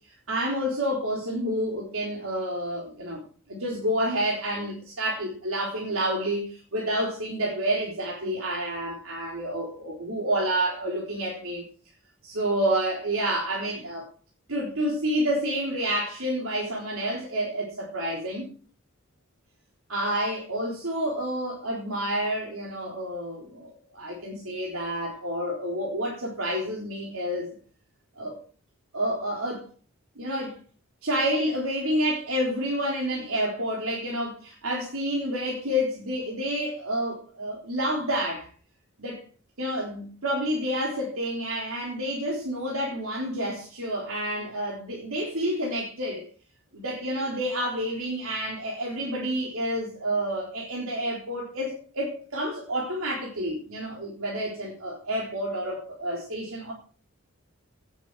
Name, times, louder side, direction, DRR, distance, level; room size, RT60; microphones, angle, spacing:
voice 1, 0.3-3.2 3.5-11.6 12.2-14.1 14.5-18.5 19.9-27.5 28.2-28.3 28.9-29.7 30.2-30.6 31.0-38.5 39.0-39.2 39.6-46.3 46.7-56.7, equal, 80° right, 3.8 m, -29 dB
17.5 x 8.3 x 4.8 m
head